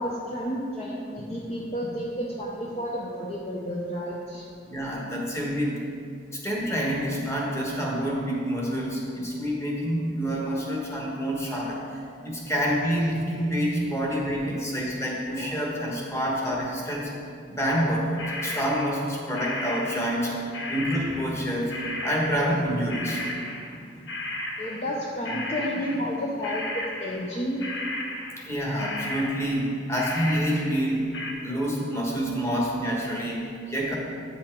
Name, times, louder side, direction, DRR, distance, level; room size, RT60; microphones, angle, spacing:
voice 1, 0.0-4.4 14.5-14.6 24.6-27.6, equal, 35° left, -3 dB, 0.6 m, -31 dB
voice 2, 4.7-5.8 6.3-17.1 17.5-20.3 20.7-23.2 24.6-24.8 28.4-31.1 31.4-34.0, equal, 15° left, -3 dB, 1.2 m, -27 dB
sound 1, 18.2-25.0 25.2-27.3 27.6-28.5 28.8-31.3, left 1 dB, 70° left, 0.9 m, -35 dB
8.7 x 5.6 x 4.5 m, 2.4 s
head